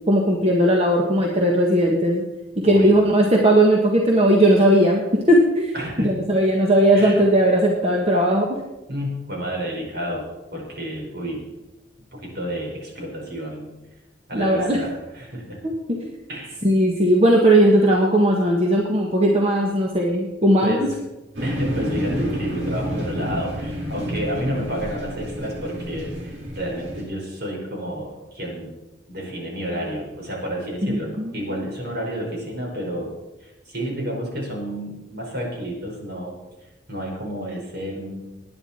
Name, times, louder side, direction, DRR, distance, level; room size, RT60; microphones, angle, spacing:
voice 1, 0.1-2.2 2.6-8.6 14.3-14.8 15.6-16.1 16.6-20.9 30.9-31.3, right 1 dB, 35° right, -1 dB, 1.5 m, -18 dB
voice 2, 2.6-3.0 5.7-6.1 6.9-7.2 8.9-11.5 12.1-13.7 14.3-15.6 16.3-16.5 20.6-21.0 21.4-28.7 29.1-33.1 33.4-38.3, equal, 60° right, -1 dB, 5.2 m, -30 dB
sound 1, 21.3-27.0, equal, 75° right, 4.6 m, -29 dB
19.5 x 10.0 x 4.4 m, 1.0 s
head